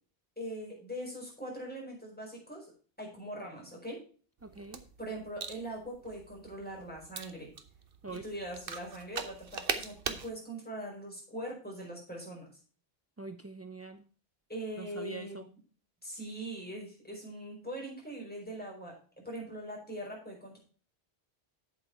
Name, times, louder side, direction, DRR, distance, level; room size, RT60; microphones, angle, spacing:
voice 1, 0.4-2.7 3.0-4.0 5.0-7.5 8.1-12.5 14.5-15.5 16.0-18.9 19.2-20.6, right 1 dB, 10° left, -2 dB, 4.6 m, -41 dB
voice 2, 4.4-4.8 8.0-8.2 13.2-14.0 14.8-15.5, right 3 dB, 25° right, 8 dB, 0.3 m, -44 dB
sound 1, 4.4-10.3, right 5 dB, 60° right, 1.1 m, -41 dB
8.3 x 8.1 x 4.5 m, 0.41 s
omnidirectional pair, 1.1 m